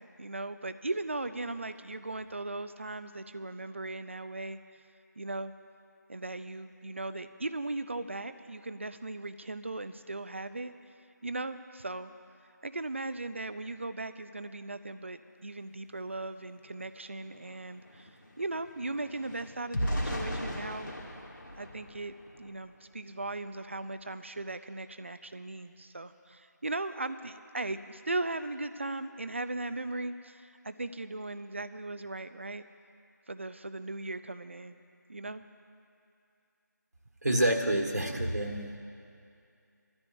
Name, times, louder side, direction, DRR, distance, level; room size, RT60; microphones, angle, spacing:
voice 1, 0.0-4.6 5.2-5.5 6.1-10.7 11.2-12.1 12.6-20.9 21.6-32.6 33.3-34.8 35.1-35.4, right 2 dB, 40° right, 11 dB, 0.5 m, -38 dB
sound 1, 16.8-16.9 17.2-22.6 23.2-23.4 23.7-24.0, equal, 80° left, 2.3 m, -38 dB
voice 2, 37.2-38.8, right 1 dB, 60° right, 2 dB, 1.7 m, -28 dB
24.0 x 13.5 x 2.6 m, 2.5 s
figure-of-eight pair, 170°, 10 cm